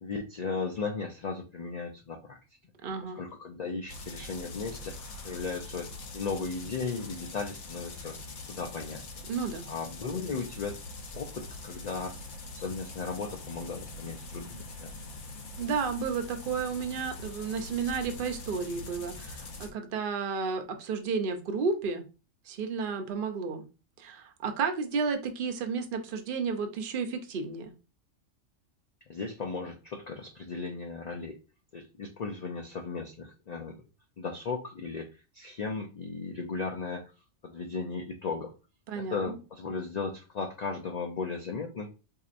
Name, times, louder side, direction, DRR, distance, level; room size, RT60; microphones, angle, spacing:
voice 1, 0.0-2.4 3.0-5.0 5.2-8.2 8.5-9.0 9.7-10.8 11.1-12.2 12.5-15.0 29.1-31.4 31.7-33.8 34.2-37.1 37.4-38.5 39.0-41.9, left 4 dB, 85° left, 3 dB, 0.3 m, -36 dB
voice 2, 2.8-3.2 9.3-9.7 15.6-22.0 22.5-23.6 24.0-27.7 38.9-39.4, right 5 dB, 55° right, 6 dB, 0.7 m, -32 dB
sound 1, 3.9-19.7, left 3 dB, 70° left, 0.9 m, -43 dB
4.2 x 2.8 x 2.4 m, 0.31 s
omnidirectional pair, 1.3 m